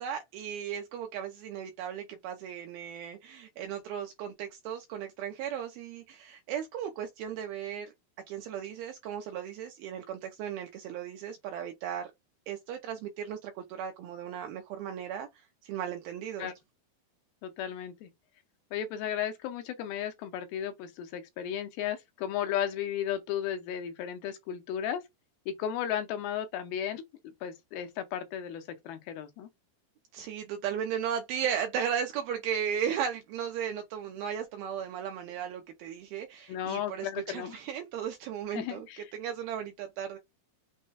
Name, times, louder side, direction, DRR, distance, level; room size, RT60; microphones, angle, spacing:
voice 1, 0.0-7.9 8.3-12.1 12.5-16.5 30.1-38.9 39.1-40.2, right 8 dB, 80° right, 2.4 m, -36 dB
voice 2, 17.4-18.1 18.7-25.0 25.5-27.0 27.4-29.5 36.5-37.6 38.5-39.1, left 10 dB, 80° left, 2.4 m, -34 dB
6.2 x 2.2 x 4.0 m
omnidirectional pair, 4.6 m